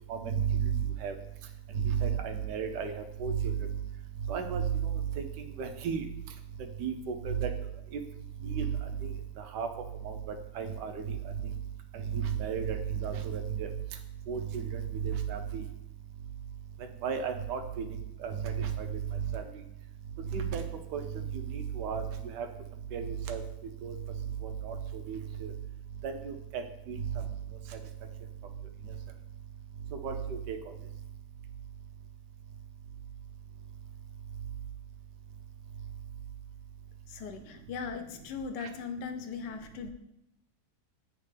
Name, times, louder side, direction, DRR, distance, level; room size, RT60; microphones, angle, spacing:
voice 1, 0.1-1.2 1.8-3.6 4.3-6.0 6.8-7.5 7.9-8.0 8.4-8.7 9.0-9.1 9.5-9.7 10.0-10.2 10.5-11.0 11.9-13.7 14.3-15.6 17.0-17.8 18.2-19.0 19.3-19.4 20.3-20.6 20.9-22.5 22.9-23.4 23.8-23.9 24.4-25.5 26.0-27.0 30.0-30.6, right 7 dB, 85° right, 5 dB, 1.2 m, -33 dB
voice 2, 37.1-39.9, left 5 dB, 85° left, 6 dB, 1.3 m, -39 dB
8.8 x 3.3 x 3.2 m, 0.83 s
omnidirectional pair, 1.8 m